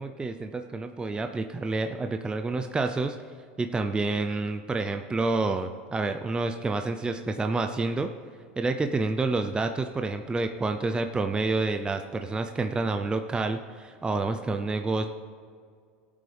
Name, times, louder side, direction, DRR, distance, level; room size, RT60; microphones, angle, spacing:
voice 1, 0.0-3.2 3.6-8.1 8.6-15.1, right 3 dB, 15° right, 6 dB, 0.6 m, -28 dB
16.5 x 8.5 x 3.4 m, 2.1 s
hypercardioid pair, 100°, 6 cm